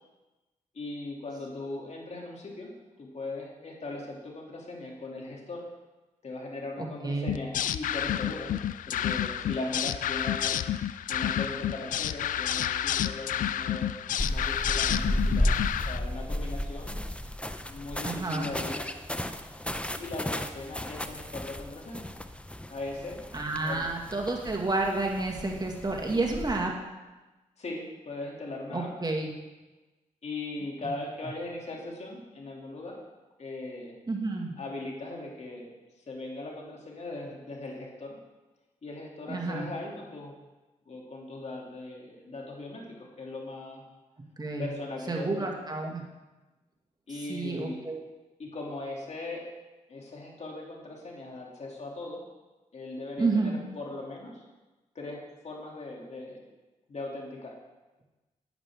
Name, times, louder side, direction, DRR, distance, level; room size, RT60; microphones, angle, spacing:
voice 1, 0.7-5.6 6.2-8.5 8.9-13.9 14.3-15.5 15.9-17.0 17.7-18.9 20.0-22.1 22.7-23.2 23.5-23.9 27.6-28.9 30.2-33.0 33.4-34.0 34.6-35.7 36.1-38.2 38.8-40.3 40.9-43.8 44.6-45.5 47.1-47.8 48.4-49.5 49.9-52.3 52.7-54.4 54.9-56.4 56.9-57.5, left 2 dB, 55° left, -1 dB, 2.8 m, -39 dB
voice 2, 6.8-7.3 18.0-18.5 23.3-26.7 28.7-29.3 34.1-34.5 39.3-39.7 44.4-44.7 45.1-46.0 47.3-48.0 53.2-53.5, right 3 dB, 30° right, 0 dB, 2.0 m, -30 dB
sound 1, 7.3-16.0, left 10 dB, 75° left, 0.4 m, -30 dB
sound 2, 14.2-26.6, left 1 dB, 10° left, 0.7 m, -34 dB
11.0 x 10.0 x 3.6 m, 1.1 s
supercardioid pair, 50°, 14 cm